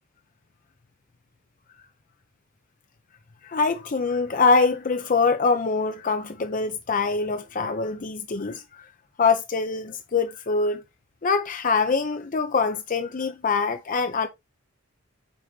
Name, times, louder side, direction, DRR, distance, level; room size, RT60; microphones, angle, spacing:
voice 1, 3.4-8.9 9.2-10.8 11.2-14.3, left 4 dB, 40° left, 0.6 m, -24 dB
8.7 x 4.0 x 3.2 m
head